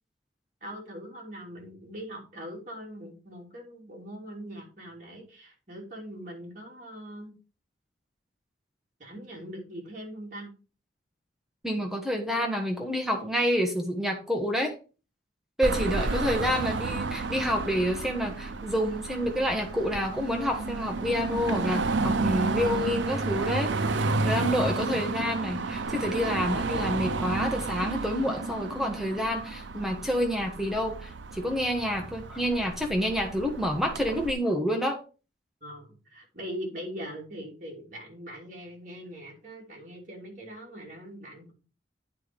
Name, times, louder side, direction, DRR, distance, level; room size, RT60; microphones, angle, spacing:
voice 1, 0.6-7.3 9.0-10.5 35.6-41.5, equal, 40° right, -1 dB, 3.0 m, -41 dB
voice 2, 11.6-14.7 15.6-23.7 24.2-35.0, equal, ahead, 2 dB, 1.1 m, -28 dB
Car passing by / Traffic noise roadway noise / Engine, 15.6-34.3, right 3 dB, 75° right, 0.7 m, -31 dB
9.3 x 4.6 x 5.2 m, 0.35 s
head